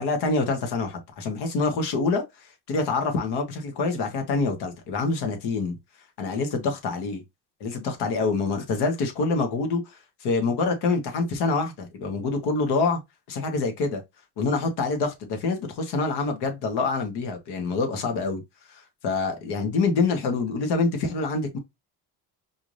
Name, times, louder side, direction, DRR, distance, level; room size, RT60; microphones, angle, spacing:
voice 1, 0.0-2.2 2.7-5.8 6.2-7.2 7.6-13.0 13.3-14.0 14.4-18.4 18.7-21.6, left 3 dB, 80° left, 1.6 m, -26 dB
4.8 x 3.4 x 2.6 m
cardioid pair, 120°, 39 cm